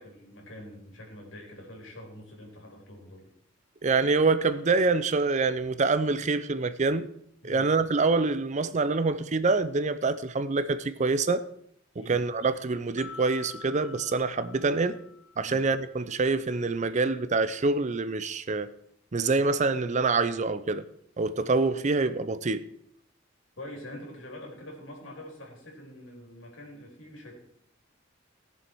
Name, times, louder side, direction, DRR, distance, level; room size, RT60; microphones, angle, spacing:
voice 1, 0.0-3.2 7.4-8.0 8.6-8.7 12.0-12.2 15.4-15.6 23.6-27.5, left 1 dB, 75° left, 3.7 m, -45 dB
voice 2, 3.8-7.1 7.4-11.4 12.1-15.0 15.4-18.7 19.1-20.8 21.2-22.6, right 3 dB, 40° right, 0.5 m, -26 dB
sound 1, 13.0-16.1, left 6 dB, 25° left, 1.7 m, -47 dB
18.0 x 7.1 x 4.6 m
head